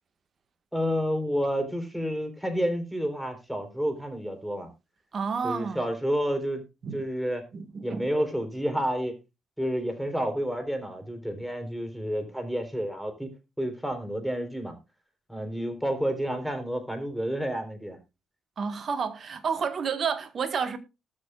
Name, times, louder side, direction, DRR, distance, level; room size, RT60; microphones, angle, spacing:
voice 1, 0.7-4.7 5.4-6.6 6.9-7.4 7.8-9.1 9.6-13.3 13.6-14.7 15.3-18.0, equal, ahead, 3.7 m, -30 dB
voice 2, 5.1-5.8 6.8-7.0 7.5-8.1 18.6-20.8, right 6 dB, 50° right, 1.6 m, -30 dB
19.0 x 6.7 x 2.4 m
hypercardioid pair, 50°, 0 cm